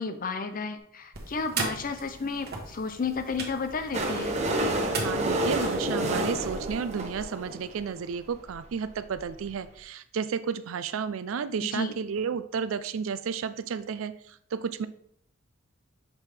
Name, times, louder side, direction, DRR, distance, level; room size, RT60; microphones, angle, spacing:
voice 1, 0.0-4.4 11.6-11.9, left 4 dB, 45° left, 9 dB, 0.6 m, -32 dB
sound 1, 1.1-5.9, right 4 dB, 50° right, 1.2 m, -38 dB
sound 2, 3.9-7.8 8.5-8.6 8.8-8.9 9.0-9.2 9.5-9.6, right 1 dB, 35° right, 0.9 m, -29 dB
voice 2, 5.0-14.9, right 6 dB, 75° right, 13 dB, 0.4 m, -32 dB
6.9 x 4.5 x 3.4 m, 0.69 s
head